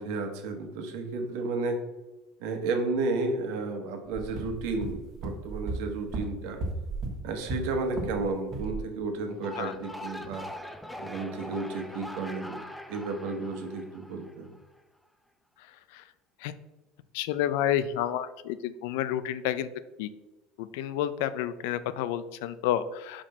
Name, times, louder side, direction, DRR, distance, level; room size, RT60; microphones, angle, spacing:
voice 1, 0.0-1.8 2.4-6.6 7.2-10.5 11.0-12.6 12.9-14.5, right 3 dB, 70° right, 4 dB, 1.3 m, -32 dB
sound 1, 4.1-8.2 8.5-8.8, right 2 dB, 35° right, 1.3 m, -35 dB
sound 2, 9.3-14.6, left 1 dB, ahead, 0.5 m, -42 dB
voice 2, 17.1-19.7 20.0-20.1 20.6-23.2, left 11 dB, 75° left, 14 dB, 0.4 m, -30 dB
5.7 x 5.1 x 4.3 m, 1.1 s
supercardioid pair, 140°, 0 cm